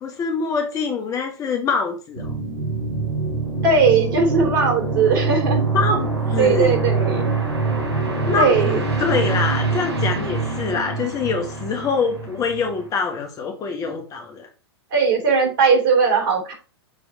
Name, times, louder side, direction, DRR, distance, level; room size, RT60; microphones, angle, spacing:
voice 1, 0.0-2.3 5.7-6.8 8.3-14.5, left 4 dB, 25° left, 4 dB, 1.3 m, -24 dB
sound 1, 2.1-12.9, right 4 dB, 80° right, 3.4 m, -24 dB
voice 2, 3.6-5.7 6.4-7.3 8.4-8.8 14.9-16.5, right 5 dB, 55° right, 1 dB, 3.4 m, -18 dB
7.6 x 3.5 x 4.2 m, 0.34 s
figure-of-eight pair, 110°, 14 cm